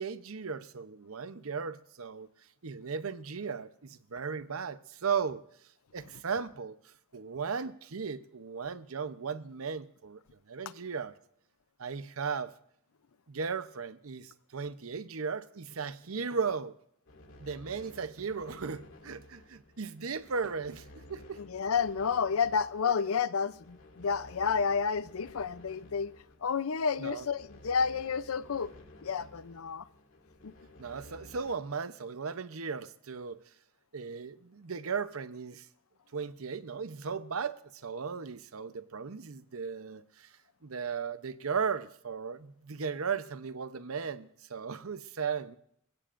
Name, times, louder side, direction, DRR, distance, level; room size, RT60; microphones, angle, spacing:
voice 1, 0.0-2.3 2.6-5.4 5.9-6.8 7.1-10.2 10.5-11.2 11.8-12.5 13.3-16.7 17.4-21.4 22.8-22.9 27.0-27.3 30.8-33.4 33.9-35.7 36.1-40.3 40.6-45.6, right 5 dB, 90° right, 0.8 m, -36 dB
sound 1, 17.1-31.6, left 1 dB, 65° left, 2.4 m, -54 dB
voice 2, 21.4-26.1 26.4-28.7 29.0-29.8 30.4-30.5, left 6 dB, 85° left, 0.6 m, -30 dB
27.5 x 16.0 x 2.6 m
head